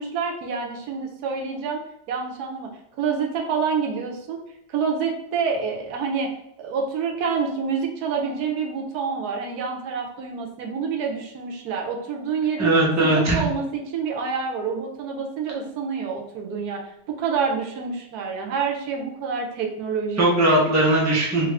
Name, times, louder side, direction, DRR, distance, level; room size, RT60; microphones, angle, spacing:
voice 1, 0.0-1.8 2.1-2.7 3.0-4.4 4.7-6.3 6.6-12.7 13.0-16.8 17.1-20.3, right 5 dB, 90° right, 2 dB, 1.2 m, -27 dB
voice 2, 12.6-13.4 20.2-21.5, right 1 dB, 15° right, -5 dB, 0.7 m, -19 dB
3.3 x 2.4 x 3.2 m, 0.79 s
omnidirectional pair, 1.6 m